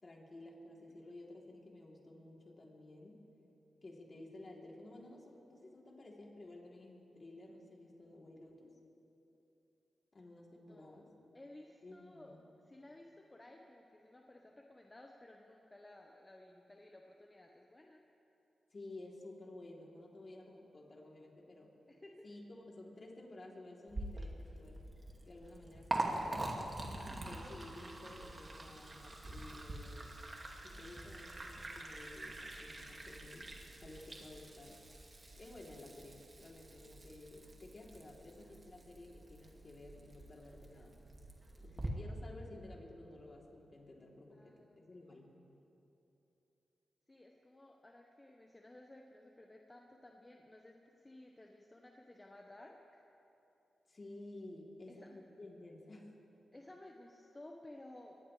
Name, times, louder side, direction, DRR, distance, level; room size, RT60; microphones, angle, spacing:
voice 1, 0.0-3.2 3.8-8.8 10.1-11.1 11.8-12.4 18.7-21.7 22.2-24.8 25.2-26.7 27.3-30.2 30.6-33.5 33.8-34.8 35.3-41.0 41.6-45.3 53.9-56.1, left 2 dB, 40° left, -2 dB, 3.3 m, -53 dB
voice 2, 11.3-12.3 12.6-18.0 21.9-22.2 44.3-45.2 47.1-53.0 54.9-55.2 56.5-58.2, left 1 dB, 20° left, 0 dB, 1.3 m, -56 dB
Liquid, 23.9-41.9, right 2 dB, 35° right, 2.2 m, -45 dB
23.0 x 18.5 x 3.4 m, 3.0 s
cardioid pair, 75°, 0 cm